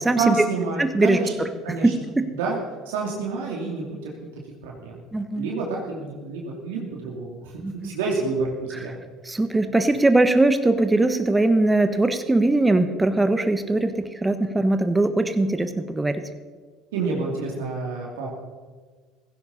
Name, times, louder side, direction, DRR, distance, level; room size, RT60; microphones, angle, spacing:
voice 1, 0.2-1.3 1.6-1.9 2.3-2.6 2.9-4.3 4.6-5.0 5.3-9.0 16.9-18.3, right 4 dB, 75° right, -2 dB, 2.5 m, -28 dB
voice 2, 0.8-1.2 1.8-1.9 5.1-5.5 7.6-7.9 9.2-16.2, right 2 dB, 15° right, 10 dB, 1.3 m, -21 dB
16.0 x 16.0 x 4.2 m, 1.5 s
hypercardioid pair, 65°, 0 cm